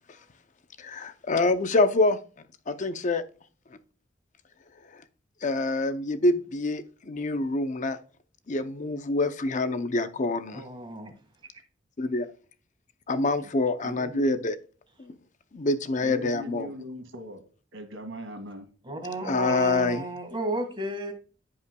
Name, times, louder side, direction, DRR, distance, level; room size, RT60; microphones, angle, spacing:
voice 1, 0.8-2.2 2.7-3.2 4.9-5.0 5.4-8.0 8.5-10.6 12.0-12.3 13.1-14.6 15.0-15.2 15.5-16.7 19.2-20.1, left 2 dB, 40° left, 0.6 m, -26 dB
voice 2, 10.5-11.1 18.8-21.1, right 2 dB, 25° right, 1.8 m, -33 dB
voice 3, 13.8-14.3 16.0-17.4 17.7-18.7, equal, 80° right, 2.0 m, -40 dB
14.5 x 5.5 x 2.3 m
head